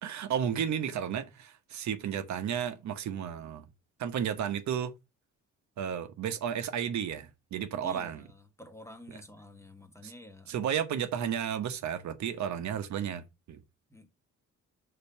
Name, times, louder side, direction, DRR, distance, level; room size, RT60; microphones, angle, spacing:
voice 1, 0.0-3.6 4.0-4.9 5.8-8.3 10.0-10.1 10.5-13.6, right 8 dB, 65° right, 1.1 m, -33 dB
voice 2, 7.8-10.5 13.9-14.1, left 1 dB, 10° left, 1.4 m, -50 dB
5.3 x 3.9 x 5.7 m
cardioid pair, 90°, 30 cm